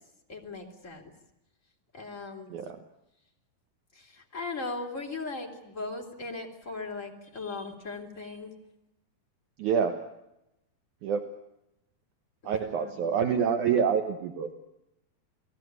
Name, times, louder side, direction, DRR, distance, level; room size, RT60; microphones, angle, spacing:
voice 1, 0.3-1.0 1.9-2.5 4.0-8.5 12.4-13.0, left 3 dB, 20° left, 2 dB, 3.5 m, -38 dB
voice 2, 9.6-10.1 11.0-11.3 12.4-14.5, right 7 dB, 65° right, 7 dB, 2.4 m, -27 dB
29.5 x 18.5 x 9.6 m, 0.88 s
omnidirectional pair, 4.3 m